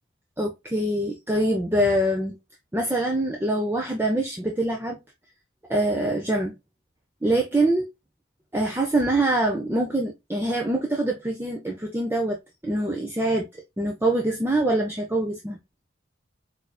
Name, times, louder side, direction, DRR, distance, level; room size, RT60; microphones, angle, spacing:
voice 1, 0.4-2.4 2.7-5.0 5.7-6.5 7.2-7.9 8.5-12.4 12.6-13.5 13.8-15.6, right 1 dB, 10° right, 0.5 m, -24 dB
4.5 x 2.6 x 2.3 m
head